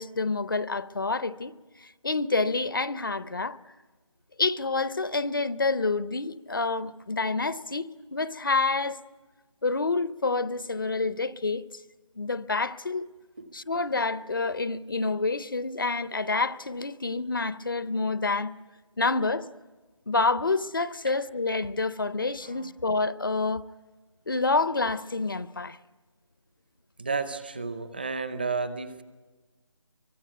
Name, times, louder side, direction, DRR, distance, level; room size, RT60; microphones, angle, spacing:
voice 1, 0.0-1.5 2.0-3.6 4.4-9.0 9.6-11.6 12.2-13.1 13.5-18.6 19.0-19.5 20.1-23.7 24.3-25.8, left 3 dB, 45° left, 0.7 m, -28 dB
voice 2, 27.0-29.0, right 4 dB, 20° right, 0.7 m, -32 dB
24.0 x 23.5 x 9.2 m
figure-of-eight pair, 170°, 16 cm